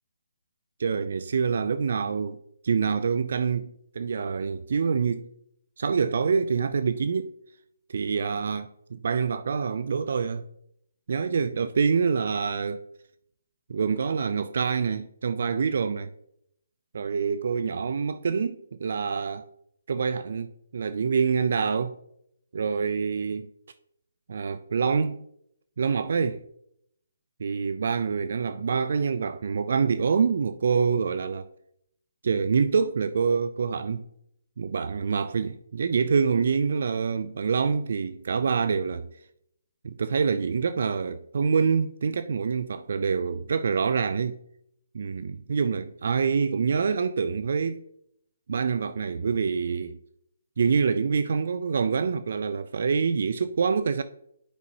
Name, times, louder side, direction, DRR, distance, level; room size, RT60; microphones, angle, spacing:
voice 1, 0.8-2.4 2.6-5.3 5.8-7.3 7.9-10.4 11.1-12.8 13.7-16.1 16.9-19.4 19.9-22.0 22.5-23.5 24.3-25.2 25.8-26.4 27.4-31.5 32.2-34.1 34.6-39.1 39.8-44.4 44.9-47.8 48.5-50.0 50.6-54.0, right 5 dB, 60° right, 0.4 m, -26 dB
10.0 x 5.2 x 2.7 m
figure-of-eight pair, 145°, 0 cm